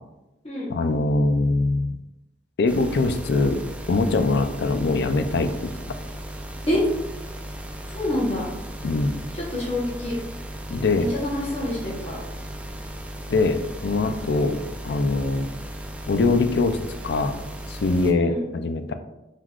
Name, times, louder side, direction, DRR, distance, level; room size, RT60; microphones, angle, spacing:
voice 1, 0.7-2.0 2.6-3.6 3.9-5.7 8.8-9.1 10.7-11.1 13.3-14.6 14.8-15.5 16.1-16.8 17.0-17.4 17.7-18.9, left 3 dB, 65° left, 9 dB, 0.4 m, -22 dB
sound 1, 2.7-18.1, right 1 dB, 10° right, 0.3 m, -36 dB
voice 2, 7.9-8.5 9.5-10.2 11.0-12.2 18.2-18.5, left 1 dB, 35° left, -5 dB, 1.0 m, -26 dB
4.6 x 3.8 x 2.3 m, 0.95 s
head